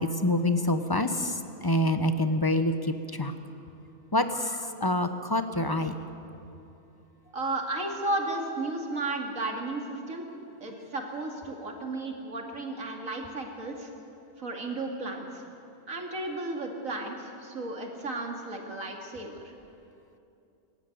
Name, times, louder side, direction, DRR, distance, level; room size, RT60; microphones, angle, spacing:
voice 1, 0.0-3.3 4.1-6.0, left 1 dB, 20° left, 8 dB, 0.9 m, -27 dB
voice 2, 7.3-10.3 10.6-13.9 14.4-15.4 15.9-19.5, right 2 dB, 80° right, 2 dB, 2.8 m, -34 dB
24.0 x 13.5 x 9.4 m, 2.7 s
omnidirectional pair, 1.4 m